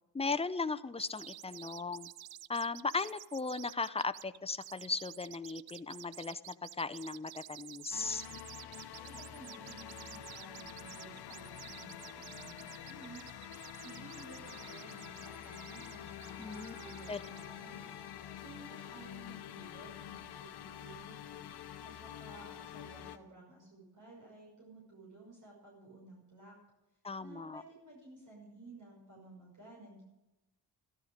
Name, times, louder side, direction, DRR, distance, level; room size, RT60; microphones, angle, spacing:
voice 1, 0.1-2.1 2.5-8.2 16.4-16.7 17.1-17.2 27.0-27.6, left 4 dB, 15° left, 12 dB, 0.5 m, -37 dB
sound 1, 1.0-17.5, right 13 dB, 65° right, 0.5 m, -51 dB
sound 2, 7.9-23.2, left 10 dB, 75° left, 0.9 m, -47 dB
sound 3, 8.9-20.4, right 1 dB, 5° right, 1.5 m, -60 dB
voice 2, 8.9-17.9 18.4-21.3 21.8-26.6 27.2-30.0, right 3 dB, 50° right, -4 dB, 6.0 m, -55 dB
14.5 x 12.5 x 5.2 m, 1.0 s
cardioid pair, 115°, 40 cm